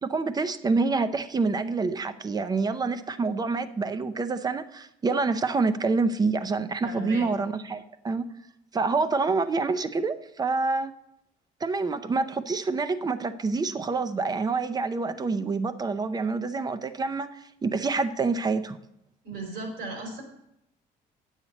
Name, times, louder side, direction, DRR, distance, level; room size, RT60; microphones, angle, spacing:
voice 1, 0.0-8.3 8.7-10.9 11.6-18.8, right 4 dB, 25° right, 0.6 m, -27 dB
voice 2, 6.8-7.2 19.2-20.2, right 2 dB, 80° right, 3.3 m, -36 dB
9.5 x 7.3 x 4.1 m
cardioid pair, 110°, 17 cm